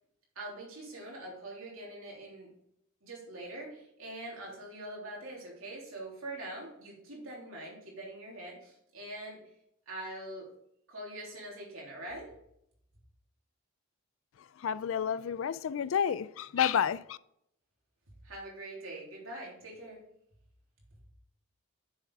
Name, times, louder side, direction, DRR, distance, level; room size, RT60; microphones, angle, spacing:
voice 1, 0.3-2.5 3.0-9.4 9.9-10.5 10.9-12.3 18.2-20.0, right 1 dB, 70° right, 3.3 m, -43 dB
voice 2, 14.4-17.2, left 8 dB, 65° left, 0.3 m, -30 dB
7.4 x 6.7 x 4.8 m
head